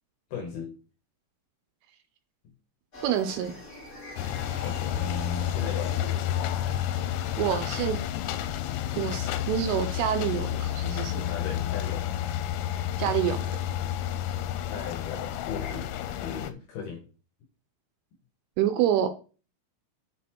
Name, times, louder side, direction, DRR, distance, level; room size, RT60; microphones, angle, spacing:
voice 1, 0.3-0.7 4.6-6.0 11.2-12.1 14.6-17.0, left 6 dB, 70° left, 1 dB, 2.6 m, -37 dB
sound 1, 2.9-8.5, left 2 dB, 35° left, 1.1 m, -45 dB
voice 2, 3.0-3.5 7.4-8.0 9.0-11.3 13.0-13.4 18.6-19.1, right 10 dB, 80° right, 9 dB, 3.0 m, -27 dB
sound 2, 4.2-16.5, left 11 dB, 85° left, 3.2 m, -30 dB
8.5 x 4.1 x 4.4 m, 0.35 s
omnidirectional pair, 5.9 m